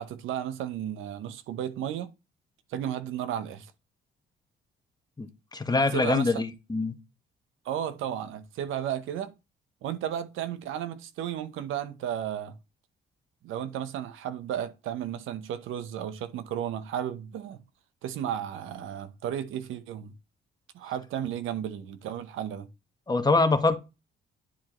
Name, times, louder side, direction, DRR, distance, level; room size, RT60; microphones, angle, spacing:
voice 1, 0.0-2.1 2.7-3.7 5.9-6.4 7.6-9.3 9.8-12.6 13.4-17.6 18.0-20.1 20.7-22.7, right 10 dB, 85° right, 0.9 m, -33 dB
voice 2, 5.2-6.9 23.1-23.8, left 3 dB, 20° left, 1.2 m, -24 dB
10.0 x 4.4 x 3.0 m
cardioid pair, 90°, 20 cm